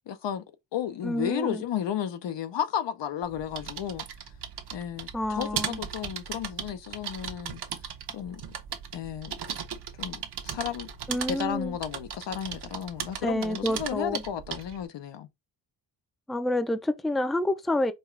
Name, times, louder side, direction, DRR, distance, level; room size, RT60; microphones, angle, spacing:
voice 1, 0.1-0.4 0.7-4.0 4.7-7.6 8.1-8.4 8.9-9.3 10.0-10.9 11.3-15.3, left 9 dB, 75° left, 0.8 m, -33 dB
voice 2, 1.0-1.6 5.1-5.8 11.1-11.8 13.2-14.2 16.3-17.9, left 1 dB, ahead, 0.5 m, -28 dB
sound 1, 3.2-14.8, right 7 dB, 65° right, 1.0 m, -37 dB
5.3 x 2.3 x 3.2 m
cardioid pair, 90°, 44 cm